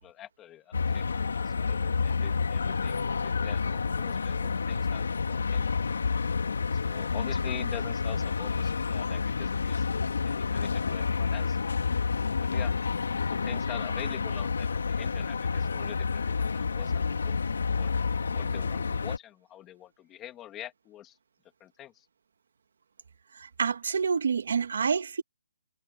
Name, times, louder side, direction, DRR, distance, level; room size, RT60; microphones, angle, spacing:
voice 1, 0.0-6.0 6.7-11.6 12.4-12.7 13.3-17.4 17.8-17.9 18.3-21.2 21.6-22.1, left 12 dB, 10° left, 2.8 m, -46 dB
sound 1, 0.7-19.2, left 5 dB, 60° left, 3.1 m, -29 dB
voice 2, 23.6-25.2, right 6 dB, 45° right, 2.5 m, -27 dB
hypercardioid pair, 180°, 0 cm